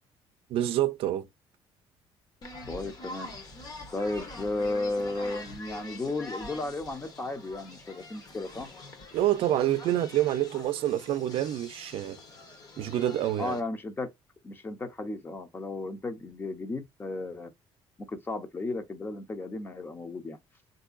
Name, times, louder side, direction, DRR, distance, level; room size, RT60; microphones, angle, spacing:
voice 1, 0.5-1.3 9.1-12.2 12.8-13.6, right 12 dB, 60° right, 0.5 m, -27 dB
sound 1, 2.4-13.6, left 2 dB, 40° left, 1.0 m, -45 dB
voice 2, 2.7-3.3 3.9-8.7 13.4-14.1 14.4-17.5 18.1-20.4, left 2 dB, 20° left, 0.6 m, -34 dB
3.8 x 2.6 x 2.5 m
cardioid pair, 155°, 11 cm